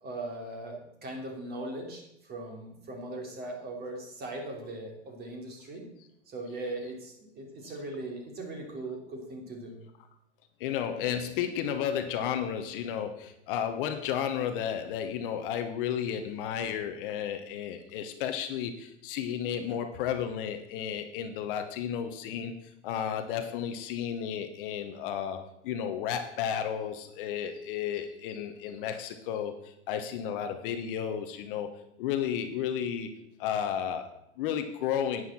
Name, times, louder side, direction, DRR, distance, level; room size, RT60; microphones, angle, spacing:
voice 1, 0.0-5.9 6.3-9.8, right 2 dB, 25° right, 1 dB, 3.1 m, -39 dB
voice 2, 10.6-22.5 22.8-31.7 32.0-33.1 33.4-35.2, left 9 dB, 45° left, 7 dB, 1.1 m, -33 dB
11.0 x 9.4 x 4.3 m, 0.80 s
figure-of-eight pair, 100°, 36 cm